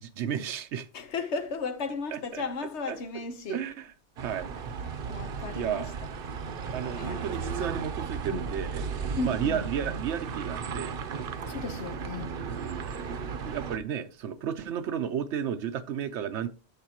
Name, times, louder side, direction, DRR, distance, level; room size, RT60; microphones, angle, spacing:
voice 1, 0.0-0.9 2.1-2.4 2.9-3.0 3.5-4.5 5.5-5.9 6.7-8.8 9.2-10.9 12.6-13.0 13.4-16.5, right 8 dB, 90° right, 0.9 m, -33 dB
voice 2, 0.9-3.6 4.9-5.9 6.9-7.2 8.3-8.4 9.2-9.6 11.5-12.3, left 4 dB, 80° left, 1.2 m, -35 dB
sound 1, 4.2-13.8, right 5 dB, 60° right, 0.8 m, -35 dB
12.0 x 6.7 x 2.9 m
omnidirectional pair, 1.1 m